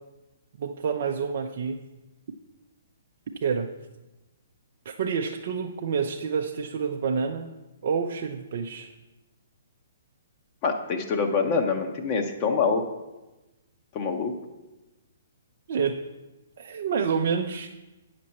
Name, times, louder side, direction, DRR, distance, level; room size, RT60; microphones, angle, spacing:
voice 1, 0.6-1.8 3.4-3.7 4.9-7.5 7.8-8.9 15.7-16.0 16.6-17.7, right 6 dB, 50° right, 2 dB, 0.5 m, -28 dB
voice 2, 10.6-12.8 13.9-14.3, left 5 dB, 35° left, 3 dB, 0.8 m, -25 dB
9.2 x 6.0 x 4.2 m, 1.1 s
figure-of-eight pair, 125°, 0 cm